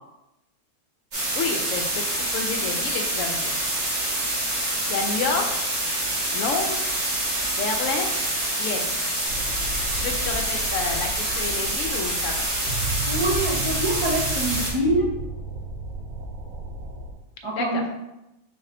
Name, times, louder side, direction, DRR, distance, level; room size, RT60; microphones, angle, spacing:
sound 1, 1.1-14.7, right 1 dB, 65° right, 1.7 m, -26 dB
voice 1, 1.3-3.6 4.9-5.4 6.3-6.9 7.6-8.1 8.6-8.9 9.9-12.5 17.6-17.8, left 4 dB, 70° left, 3 dB, 0.9 m, -29 dB
sound 2, 9.2-17.1, right 2 dB, 80° right, 1.1 m, -33 dB
voice 2, 13.1-15.1 17.4-17.9, right 1 dB, 40° right, -7 dB, 0.4 m, -25 dB
4.0 x 2.5 x 4.2 m, 0.93 s
omnidirectional pair, 1.5 m